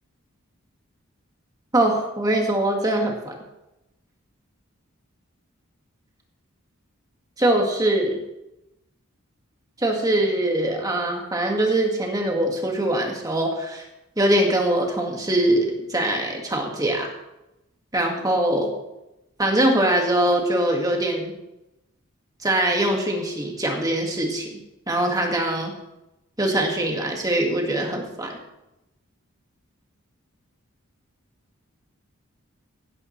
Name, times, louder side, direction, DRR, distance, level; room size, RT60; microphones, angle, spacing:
voice 1, 1.7-3.4 7.4-8.2 9.8-13.9 14.2-17.1 17.9-18.7 19.4-21.3 22.4-24.6 24.9-25.7 26.4-28.4, right 1 dB, 15° right, 1 dB, 1.8 m, -22 dB
16.0 x 10.5 x 3.2 m, 0.93 s
head